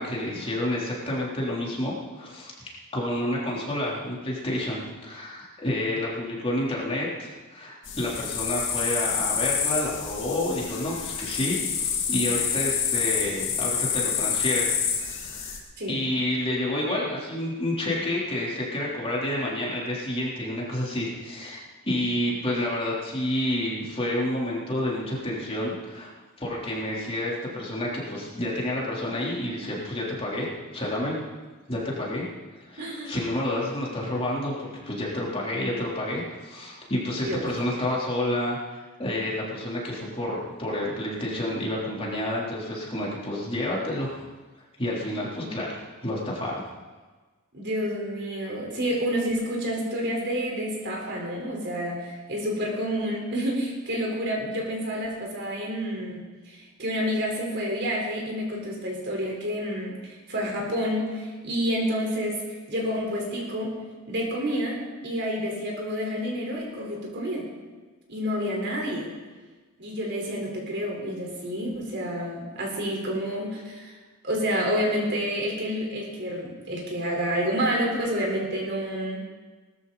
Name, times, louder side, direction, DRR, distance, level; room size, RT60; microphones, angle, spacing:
voice 1, 0.0-14.7 15.0-15.5 15.9-26.1 26.4-30.5 30.7-31.2 31.7-32.3 32.5-38.6 39.0-44.2 44.8-46.6, left 1 dB, 25° left, -5 dB, 3.5 m, -29 dB
sound 1, 7.8-15.6, left 7 dB, 60° left, 2.4 m, -28 dB
voice 2, 32.8-33.1 37.2-37.5 47.5-62.4 62.7-63.8 64.1-67.5 68.1-69.1 69.8-73.9 74.2-79.2, equal, 55° right, -1 dB, 4.2 m, -29 dB
19.0 x 13.5 x 4.1 m, 1.3 s
head